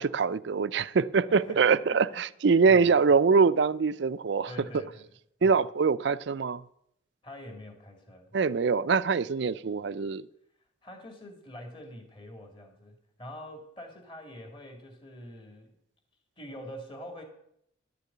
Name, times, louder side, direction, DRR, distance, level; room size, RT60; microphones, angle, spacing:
voice 1, 0.0-4.5 5.4-6.6 8.3-10.3, right 5 dB, 60° right, 16 dB, 0.4 m, -24 dB
voice 2, 1.3-2.2 2.7-3.0 4.5-5.1 5.4-5.6 7.2-8.4 10.8-15.7 16.4-17.2, left 1 dB, 25° left, 3 dB, 2.2 m, -45 dB
11.5 x 6.7 x 8.4 m, 0.74 s
head